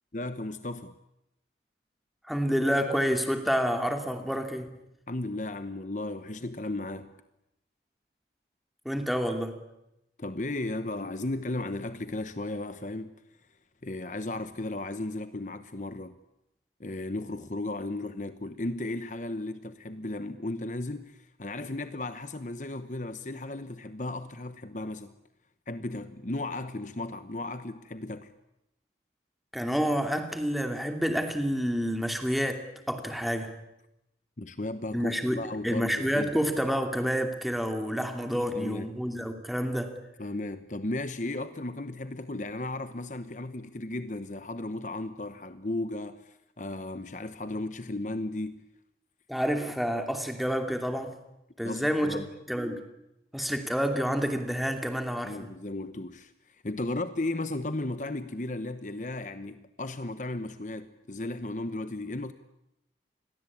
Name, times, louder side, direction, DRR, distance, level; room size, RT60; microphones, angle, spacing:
voice 1, 0.1-0.9 5.1-7.1 10.2-13.2 13.8-16.1 16.8-25.1 25.7-28.3 34.4-36.3 38.3-38.9 40.2-48.7 51.6-52.3 55.2-62.3, left 2 dB, 40° left, 1.0 m, -35 dB
voice 2, 2.3-4.7 8.8-9.6 29.5-33.5 34.9-40.0 49.3-51.2 51.6-52.2 52.5-52.8 53.3-55.5, equal, ahead, 2.6 m, -29 dB
28.0 x 22.0 x 8.7 m
head